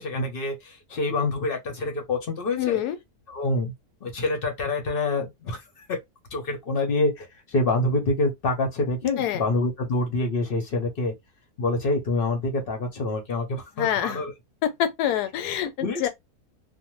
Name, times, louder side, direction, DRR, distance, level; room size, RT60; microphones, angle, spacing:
voice 1, 0.0-2.8 3.3-3.7 4.0-6.0 6.3-11.1 11.6-14.3 15.8-16.0, left 2 dB, 50° left, 0.7 m, -26 dB
voice 2, 2.6-3.0 9.2-9.4 13.8-14.2 14.6-16.1, left 11 dB, 85° left, 1.1 m, -26 dB
2.6 x 2.1 x 2.9 m
omnidirectional pair, 1.7 m